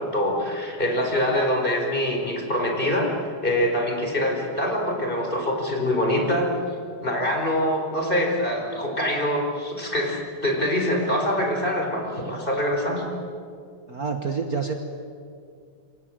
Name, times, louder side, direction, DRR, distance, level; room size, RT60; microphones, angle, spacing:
voice 1, 0.0-3.1 3.4-6.5 7.0-13.0, left 1 dB, 25° left, 1 dB, 4.9 m, -24 dB
voice 2, 13.9-14.8, right 5 dB, 50° right, 5 dB, 1.7 m, -27 dB
27.5 x 26.5 x 7.7 m, 2.3 s
omnidirectional pair, 2.3 m